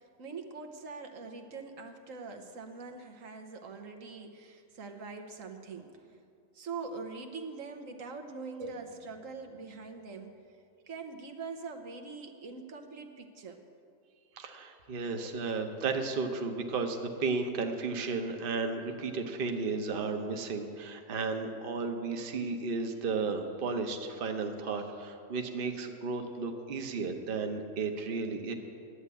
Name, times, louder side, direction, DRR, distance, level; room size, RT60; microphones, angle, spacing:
voice 1, 0.0-6.2 6.5-10.4 10.9-13.6 15.2-15.3, right 4 dB, 85° right, 4 dB, 1.3 m, -43 dB
voice 2, 14.4-28.5, right 4 dB, 45° right, 5 dB, 1.0 m, -34 dB
11.5 x 8.8 x 8.2 m, 2.4 s
omnidirectional pair, 1.3 m